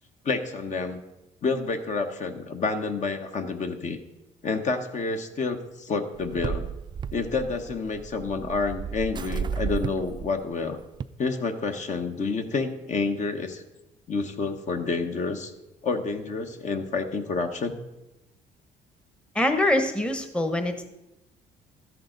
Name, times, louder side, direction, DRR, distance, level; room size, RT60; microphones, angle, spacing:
voice 1, 0.2-1.0 1.4-4.0 4.4-6.7 7.1-10.8 11.2-13.6 14.1-15.5 15.8-17.7, left 4 dB, 45° left, 6 dB, 1.2 m, -29 dB
sound 1, 6.2-11.0, right 6 dB, 25° right, 0.4 m, -33 dB
voice 2, 19.3-20.9, left 1 dB, 5° left, 7 dB, 1.0 m, -24 dB
13.0 x 11.0 x 3.9 m, 0.94 s
cardioid pair, 110°, 17 cm